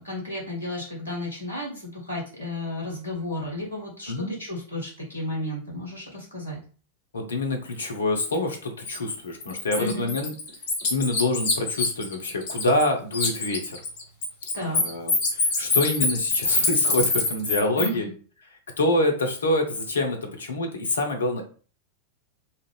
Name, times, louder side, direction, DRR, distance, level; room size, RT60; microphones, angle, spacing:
voice 1, 0.0-6.6 9.7-10.1 14.5-14.8 17.8-18.1, left 1 dB, 85° right, -3 dB, 1.3 m, -33 dB
voice 2, 7.1-10.3 10.9-13.8 14.6-18.1 18.8-21.4, left 2 dB, 70° left, 4 dB, 0.7 m, -26 dB
Bird, 8.8-9.0 9.4-12.9 13.1-17.9, left 3 dB, 50° left, 1.1 m, -25 dB
2.8 x 2.5 x 3.1 m, 0.39 s
figure-of-eight pair, 90°, 0 cm